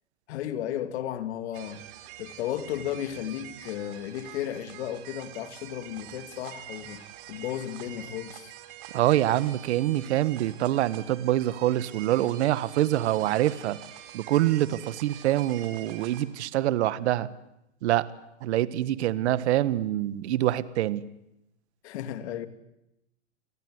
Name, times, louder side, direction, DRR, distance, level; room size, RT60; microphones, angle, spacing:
voice 1, 0.3-1.8 2.2-7.0 7.3-8.5 21.8-22.5, left 11 dB, 65° left, 2.8 m, -34 dB
sound 1, 1.5-16.2, right 12 dB, 45° right, 4.1 m, -46 dB
voice 2, 8.9-13.8 14.1-17.3 17.8-18.0 18.4-21.0, right 14 dB, 65° right, 1.6 m, -25 dB
29.0 x 19.5 x 9.7 m
supercardioid pair, 145°, 36 cm